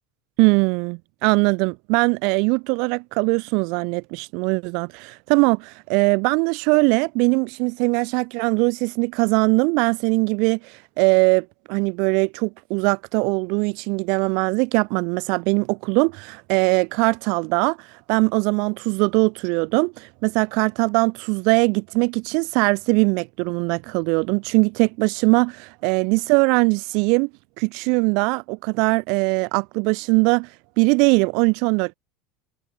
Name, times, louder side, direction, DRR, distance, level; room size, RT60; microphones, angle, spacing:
voice 1, 0.4-27.3 27.6-30.5 30.8-31.9, right 33 dB, 55° right, 5.1 m, -21 dB
cardioid pair, 165°, 0 cm